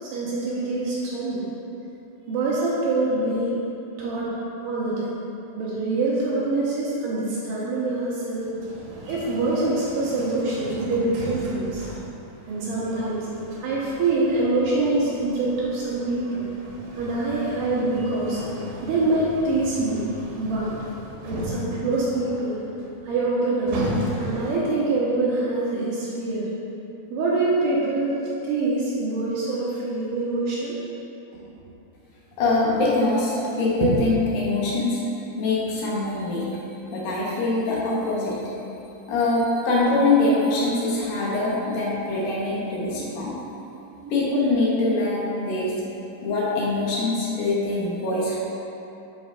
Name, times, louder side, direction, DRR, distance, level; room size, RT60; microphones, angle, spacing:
voice 1, 0.0-1.4 2.3-3.5 4.0-4.4 4.6-5.1 5.6-8.5 9.1-11.8 12.5-13.3 13.6-16.5 16.9-18.5 18.8-20.0 20.4-20.7 21.3-22.6 23.0-23.8 24.2-26.5 27.1-30.8 33.3-33.4 33.8-34.0 42.9-43.1 44.0-44.1 46.3-46.4, right 2 dB, 70° right, -7 dB, 2.2 m, -25 dB
sound 1, 8.4-24.8, equal, 90° right, 2.9 m, -36 dB
voice 2, 32.4-35.0 35.4-36.6 36.9-38.4 39.1-43.4 44.1-45.7 46.2-48.4, left 2 dB, 75° left, -6 dB, 2.7 m, -23 dB
7.8 x 6.2 x 2.4 m, 2.8 s
omnidirectional pair, 4.4 m